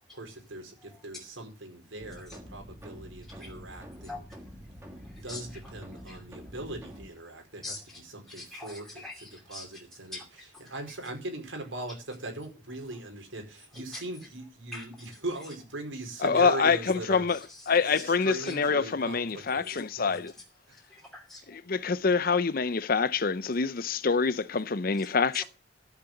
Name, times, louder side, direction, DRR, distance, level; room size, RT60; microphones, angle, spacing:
voice 1, 0.1-4.2 5.2-7.8 8.1-10.2 10.7-17.2 17.9-20.2 20.7-20.8, right 2 dB, 80° right, 4.6 m, -40 dB
sound 1, 2.0-7.1, equal, 15° right, 2.2 m, -46 dB
voice 2, 3.2-4.5 5.0-6.2 7.6-8.0 8.3-9.8 10.1-10.8 13.7-14.0 14.7-15.1 17.3-17.8 18.4-18.6 19.6-19.8 20.7-21.6 25.3-25.4, left 2 dB, ahead, 2.6 m, -45 dB
voice 3, 16.2-17.4 17.7-20.3 21.5-25.4, left 5 dB, 45° left, 0.6 m, -26 dB
13.0 x 6.8 x 7.9 m
head